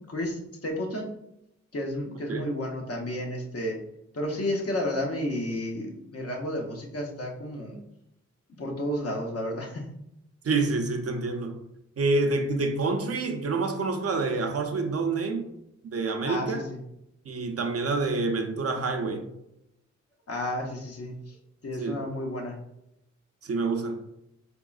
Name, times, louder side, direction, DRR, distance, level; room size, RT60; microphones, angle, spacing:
voice 1, 0.1-1.1 1.7-3.8 4.1-7.8 8.6-9.9 16.2-16.8 20.3-21.4 21.6-22.6, left 1 dB, 55° left, 1 dB, 0.8 m, -32 dB
voice 2, 10.4-11.6 12.0-15.6 15.9-16.7 17.3-19.2 21.8-22.0 23.4-24.0, right 3 dB, 55° right, 5 dB, 0.5 m, -27 dB
4.0 x 3.6 x 2.3 m, 0.81 s
wide cardioid pair, 115°, 29 cm